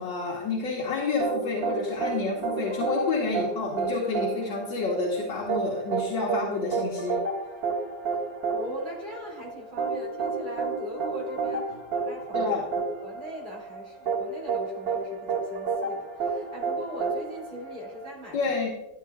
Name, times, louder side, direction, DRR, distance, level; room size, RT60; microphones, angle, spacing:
voice 1, 0.0-7.2 12.3-12.6 18.3-18.7, left 3 dB, 85° left, -4 dB, 2.0 m, -29 dB
sound 1, 1.2-18.1, right 4 dB, 85° right, 2.6 m, -30 dB
voice 2, 8.5-12.5 13.0-18.5, equal, 25° right, -4 dB, 2.7 m, -40 dB
13.0 x 9.0 x 2.4 m, 0.97 s
omnidirectional pair, 1.9 m